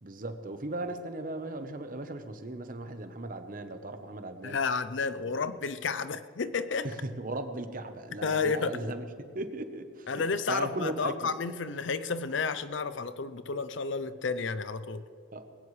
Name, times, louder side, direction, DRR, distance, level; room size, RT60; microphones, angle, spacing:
voice 1, 0.0-4.6 5.2-5.5 6.8-11.3 15.3-15.5, right 2 dB, 45° right, 8 dB, 1.0 m, -37 dB
voice 2, 4.4-6.9 8.2-8.8 10.1-15.0, left 5 dB, 75° left, 13 dB, 0.6 m, -31 dB
20.5 x 17.0 x 3.3 m, 2.3 s
head